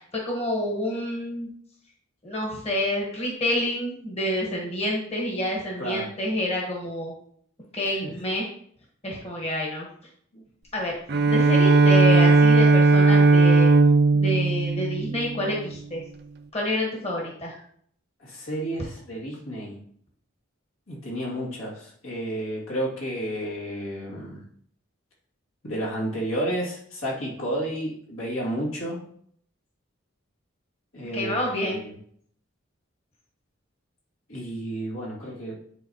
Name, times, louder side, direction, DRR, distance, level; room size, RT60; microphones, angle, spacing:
voice 1, 0.0-1.5 2.2-7.1 7.7-8.5 9.0-9.9 10.7-11.0 11.3-13.7 14.1-16.0 16.5-17.6 31.1-31.8, left 1 dB, 30° left, -2 dB, 1.3 m, -28 dB
voice 2, 5.8-6.1 7.8-8.1 10.3-10.4 18.2-19.8 20.9-24.4 25.6-29.0 30.9-31.9 34.3-35.5, right 1 dB, 80° left, -4 dB, 2.3 m, -31 dB
Bowed string instrument, 11.1-15.7, right 3 dB, 50° right, 0.5 m, -17 dB
9.7 x 4.1 x 2.9 m, 0.63 s
head